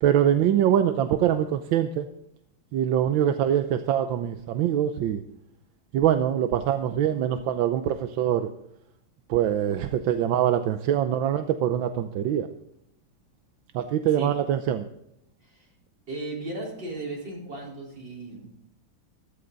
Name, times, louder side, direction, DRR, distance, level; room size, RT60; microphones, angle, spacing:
voice 1, 0.0-2.1 2.7-5.2 5.9-8.5 9.3-12.5 13.7-14.9, right 10 dB, 85° right, 8 dB, 1.5 m, -24 dB
voice 2, 16.1-18.5, right 2 dB, 70° right, -3 dB, 5.0 m, -36 dB
15.0 x 14.0 x 4.0 m, 0.79 s
omnidirectional pair, 2.1 m